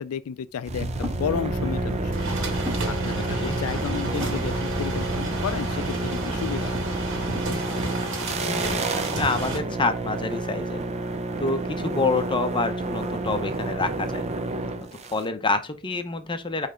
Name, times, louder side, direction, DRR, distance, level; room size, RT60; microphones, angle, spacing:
voice 1, 0.0-2.1 2.9-6.9, left 7 dB, 80° left, 0.4 m, -32 dB
sound 1, 0.7-7.4, right 1 dB, 10° right, 2.1 m, -32 dB
sound 2, 0.7-15.2, right 2 dB, 30° right, 0.5 m, -30 dB
sound 3, 1.4-9.6, right 2 dB, 60° right, 2.0 m, -33 dB
voice 2, 3.1-3.6 8.4-10.8 11.4-14.2 15.0-16.7, left 3 dB, 20° left, 0.7 m, -27 dB
9.2 x 3.3 x 3.6 m
head